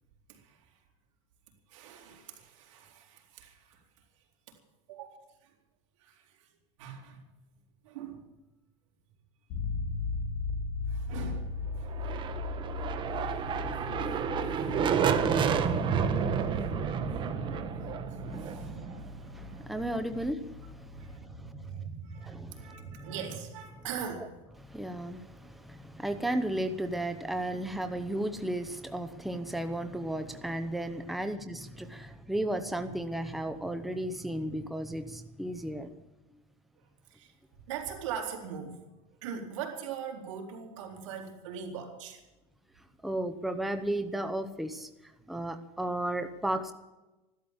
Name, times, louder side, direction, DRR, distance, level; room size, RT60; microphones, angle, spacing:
voice 1, 0.3-0.7 1.7-3.8 4.5-4.6 4.9-5.1 5.4-5.5 6.0-6.5 6.8-7.2 7.8-8.3 10.9-12.1 14.5-14.7 15.4-15.8 16.6-18.7 19.2-19.9 20.9-24.5 37.1-37.3 37.7-38.8 39.2-42.2, right 7 dB, 85° right, 2 dB, 3.8 m, -42 dB
sound 1, 9.5-21.4, left 4 dB, 60° left, 1.9 m, -38 dB
sound 2, 11.9-19.6, right 7 dB, 30° right, 1.2 m, -30 dB
voice 2, 18.2-21.3 22.3-23.0 24.6-35.9 43.0-44.9 45.3-46.7, right 1 dB, ahead, 8 dB, 0.9 m, -34 dB
14.5 x 12.5 x 7.3 m, 1.1 s
supercardioid pair, 140°, 16 cm